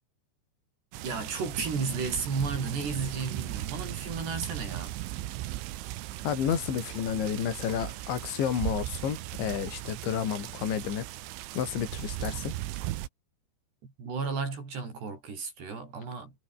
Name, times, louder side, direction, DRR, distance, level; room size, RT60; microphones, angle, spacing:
sound 1, 0.9-13.1, right 15 dB, 80° right, 3.7 m, -37 dB
voice 1, 1.0-4.9 13.8-16.3, right 4 dB, 60° right, 9.3 m, -33 dB
voice 2, 6.2-11.1 11.6-12.5, left 8 dB, 70° left, 5.8 m, -31 dB
omnidirectional pair, 5.5 m